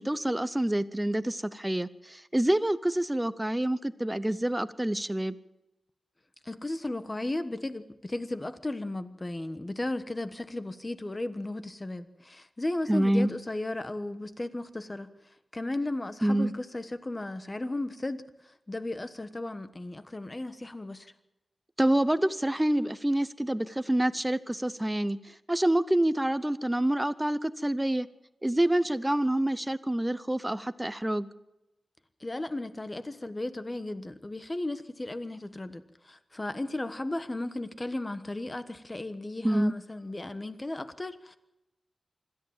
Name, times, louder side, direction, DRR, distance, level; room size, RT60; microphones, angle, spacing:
voice 1, 0.0-5.4 12.9-13.3 16.2-16.5 21.8-25.2 25.5-28.1 28.4-31.3 39.4-39.7, right 1 dB, 10° right, 0.8 m, -27 dB
voice 2, 6.4-15.1 15.5-18.2 18.7-21.1 32.2-41.4, left 2 dB, 25° left, 1.3 m, -35 dB
25.5 x 13.5 x 7.4 m
wide cardioid pair, 110°, 0 cm